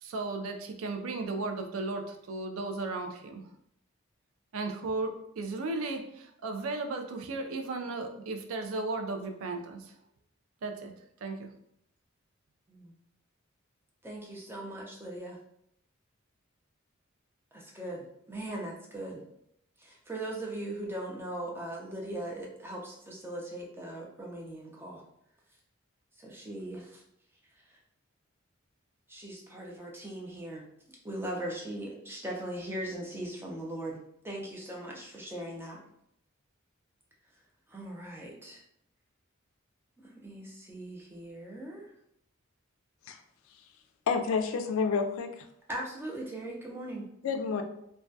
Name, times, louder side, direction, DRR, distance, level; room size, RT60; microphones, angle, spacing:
voice 1, 0.0-3.4 4.5-9.9 10.6-10.9 11.2-11.5, right 3 dB, 75° right, 5 dB, 0.4 m, -35 dB
voice 2, 14.0-15.4 17.5-19.2 19.8-25.0 26.2-27.0 29.1-30.6 31.0-35.8 37.7-38.6 40.2-41.9 45.7-47.0, right 1 dB, 10° right, -2 dB, 0.4 m, -39 dB
voice 3, 44.1-45.4 47.2-47.6, left 5 dB, 75° left, 7 dB, 0.3 m, -29 dB
2.2 x 2.1 x 2.6 m, 0.74 s
head